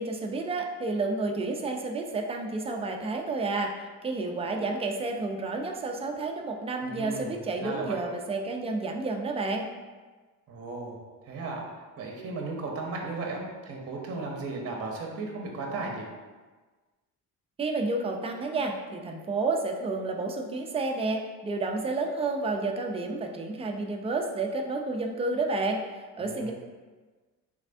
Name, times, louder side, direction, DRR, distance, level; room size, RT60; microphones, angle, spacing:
voice 1, 0.0-9.7 17.6-26.5, right 3 dB, 20° right, 2 dB, 0.3 m, -30 dB
voice 2, 6.8-8.0 10.5-11.6 12.0-16.1 26.2-26.5, right 3 dB, 40° right, 0 dB, 0.7 m, -36 dB
3.4 x 3.2 x 2.5 m, 1.3 s
cardioid pair, 105°, 36 cm